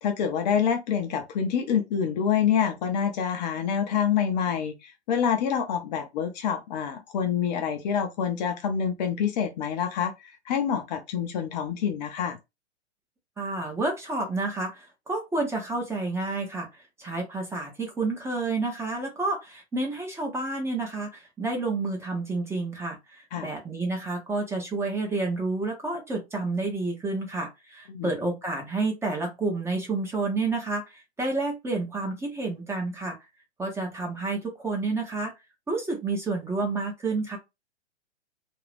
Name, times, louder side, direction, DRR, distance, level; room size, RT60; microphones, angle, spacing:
voice 1, 0.0-12.4 23.3-23.5 27.9-28.1, left 7 dB, 40° left, 0.6 m, -27 dB
voice 2, 13.4-16.7 17.0-33.2 33.6-35.3 35.7-37.4, right 3 dB, 10° right, 0.7 m, -30 dB
2.5 x 2.3 x 3.3 m
figure-of-eight pair, 110°, 34 cm